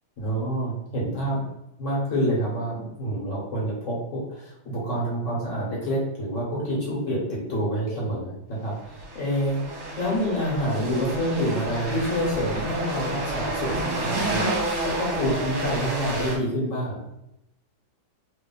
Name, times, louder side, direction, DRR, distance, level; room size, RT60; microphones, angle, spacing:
voice 1, 0.2-1.4 1.8-9.6 10.0-14.4 14.8-17.0, equal, 50° left, -5 dB, 1.1 m, -27 dB
sound 1, 8.8-16.4, right 2 dB, 60° right, 1.3 m, -30 dB
3.2 x 2.4 x 3.7 m, 0.85 s
omnidirectional pair, 2.2 m